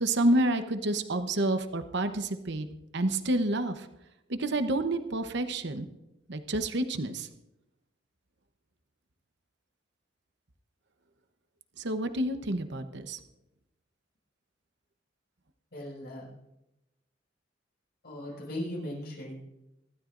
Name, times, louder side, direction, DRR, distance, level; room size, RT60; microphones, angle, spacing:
voice 1, 0.0-2.7 2.9-3.9 4.3-5.9 6.3-7.3 11.8-13.2, right 1 dB, 65° right, 8 dB, 1.0 m, -29 dB
voice 2, 15.7-16.3 18.0-19.4, left 1 dB, 60° left, -3 dB, 6.0 m, -38 dB
25.5 x 12.5 x 2.6 m, 0.92 s
head